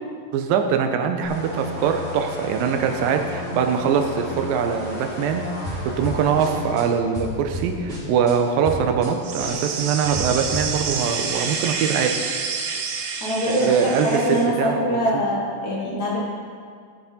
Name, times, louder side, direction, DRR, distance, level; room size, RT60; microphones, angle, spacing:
voice 1, 0.3-5.4 6.0-12.1 13.5-15.3, right 7 dB, 85° right, 5 dB, 2.5 m, -23 dB
sound 1, 1.2-6.8, left 2 dB, 30° left, 1.4 m, -33 dB
sound 2, 5.6-6.8 7.1-8.3 8.6-9.1 9.4-11.3, equal, 30° right, 2.9 m, -32 dB
sound 3, 9.2-14.5, right 5 dB, 70° right, 2.1 m, -28 dB
voice 2, 13.2-13.7 14.0-16.2, equal, 75° left, -5 dB, 0.9 m, -23 dB
15.0 x 6.9 x 4.2 m, 2.1 s
omnidirectional pair, 4.1 m